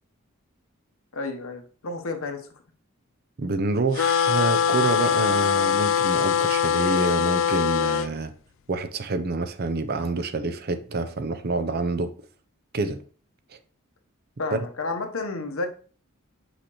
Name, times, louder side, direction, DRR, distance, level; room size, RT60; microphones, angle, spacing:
voice 1, 1.1-2.5 14.4-15.7, left 3 dB, 85° left, 1.0 m, -31 dB
voice 2, 3.4-8.3 8.7-12.1 12.7-13.0 14.5-14.6, right 3 dB, 50° right, 0.6 m, -27 dB
sound 1, 4.0-8.1, left 7 dB, 65° left, 0.3 m, -22 dB
6.4 x 5.0 x 3.0 m
head